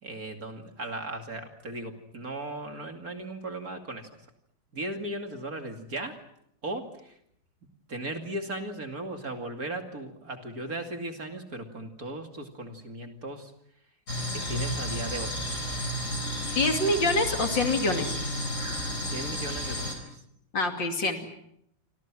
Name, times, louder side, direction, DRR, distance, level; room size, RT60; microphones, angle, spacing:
voice 1, 0.0-4.1 4.7-6.2 6.6-7.1 7.9-13.5 14.3-15.4 19.0-20.0, right 1 dB, 45° right, 5 dB, 2.9 m, -37 dB
sound 1, 14.1-19.9, equal, 35° left, 5.0 m, -32 dB
voice 2, 16.5-18.2 20.5-21.3, left 2 dB, 60° left, 5 dB, 3.3 m, -26 dB
29.0 x 25.5 x 6.2 m, 0.74 s
omnidirectional pair, 2.3 m